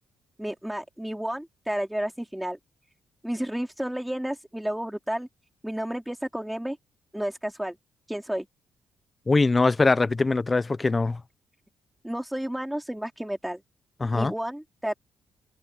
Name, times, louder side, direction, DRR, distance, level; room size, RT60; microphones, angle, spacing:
voice 1, 0.4-2.6 3.2-5.3 5.6-6.8 7.1-7.8 8.1-8.5 12.0-13.6 14.1-14.9, right 1 dB, 5° right, 3.8 m, -31 dB
voice 2, 9.3-11.2 14.0-14.3, left 3 dB, 25° left, 0.9 m, -22 dB
cardioid pair, 90°, 0 cm